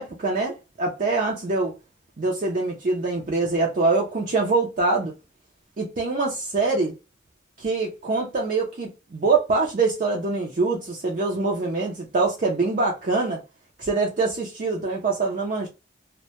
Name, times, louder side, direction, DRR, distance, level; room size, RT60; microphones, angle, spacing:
voice 1, 0.0-1.7 2.2-5.1 5.8-6.9 7.6-13.4 13.8-15.7, right 3 dB, 45° right, 0.5 m, -24 dB
2.1 x 2.1 x 2.7 m
head